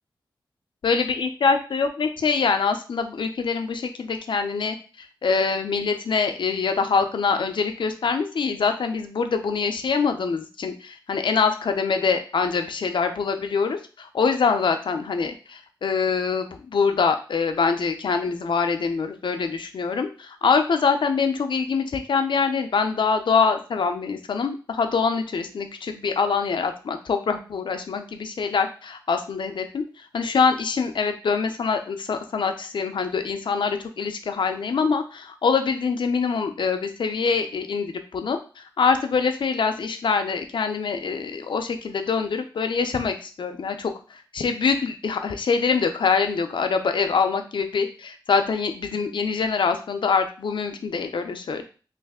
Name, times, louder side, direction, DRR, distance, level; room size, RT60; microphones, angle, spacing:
voice 1, 0.8-51.6, left 5 dB, 75° left, 6 dB, 0.5 m, -24 dB
3.2 x 2.5 x 3.5 m, 0.36 s
cardioid pair, 60°, 8 cm